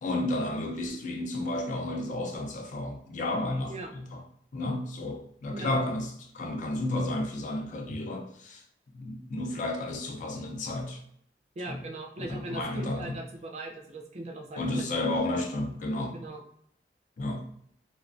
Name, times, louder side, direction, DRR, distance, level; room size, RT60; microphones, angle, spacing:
voice 1, 0.0-4.2 4.5-8.6 8.9-11.0 11.7-11.8 12.2-13.2 14.6-16.2 17.2-17.4, left 1 dB, 45° left, 0.4 m, -32 dB
voice 2, 11.6-14.8 15.3-15.4 16.1-16.4, right 2 dB, 40° right, 0.4 m, -39 dB
2.2 x 2.2 x 2.5 m
head